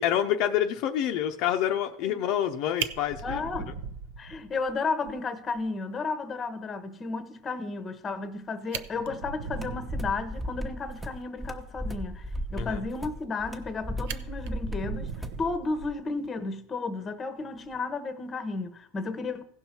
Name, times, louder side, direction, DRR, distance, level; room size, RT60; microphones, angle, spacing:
voice 1, 0.0-3.4 12.6-12.8, left 10 dB, 50° left, 0.7 m, -27 dB
Fire, 2.3-2.5 2.8-4.7 5.1-5.2 5.5-5.6 6.0-6.1 8.2-8.3 8.6-10.4 13.2-13.7 14.1-16.3 17.6-17.8, right 7 dB, 65° right, 0.8 m, -38 dB
voice 2, 3.2-3.7 4.2-15.1 15.4-19.4, left 3 dB, 20° left, 1.0 m, -33 dB
sound 1, 9.5-15.4, equal, 10° right, 1.0 m, -35 dB
16.0 x 5.6 x 4.4 m
supercardioid pair, 145°, 0 cm